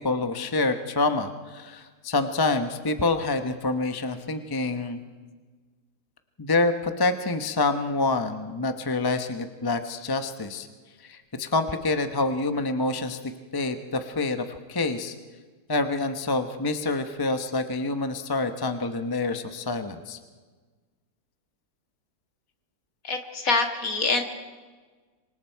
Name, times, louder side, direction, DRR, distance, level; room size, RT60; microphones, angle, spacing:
voice 1, 0.0-5.0 6.4-10.7 11.0-13.2 13.5-15.1 15.7-20.2, left 3 dB, 20° left, 8 dB, 0.8 m, -27 dB
voice 2, 23.0-24.2, left 3 dB, 55° left, 4 dB, 2.3 m, -25 dB
27.0 x 24.5 x 4.6 m, 1.4 s
omnidirectional pair, 1.8 m